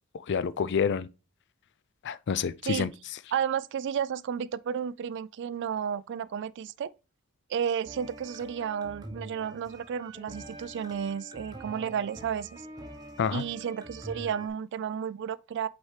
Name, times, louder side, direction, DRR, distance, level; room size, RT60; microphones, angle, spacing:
voice 1, 0.1-1.1 2.0-2.9 13.2-13.4, left 6 dB, 55° left, 0.4 m, -28 dB
voice 2, 3.3-6.9 7.5-12.6 13.3-15.7, right 8 dB, 55° right, 0.3 m, -32 dB
sound 1, 7.9-14.5, right 1 dB, 20° right, 0.9 m, -45 dB
7.8 x 4.2 x 3.3 m
head